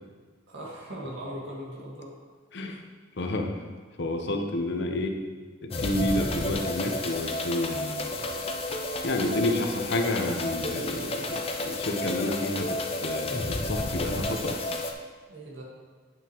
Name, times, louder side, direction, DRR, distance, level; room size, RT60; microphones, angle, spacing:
voice 1, 0.5-2.1 2.7-2.8 15.3-15.6, equal, 85° right, -4 dB, 1.7 m, -39 dB
voice 2, 3.2-5.2 5.6-8.4 9.0-14.6, left 1 dB, 65° left, 4 dB, 0.8 m, -30 dB
sound 1, 5.7-14.9, left 2 dB, 30° left, 0.6 m, -31 dB
8.9 x 5.9 x 3.0 m, 1.5 s
head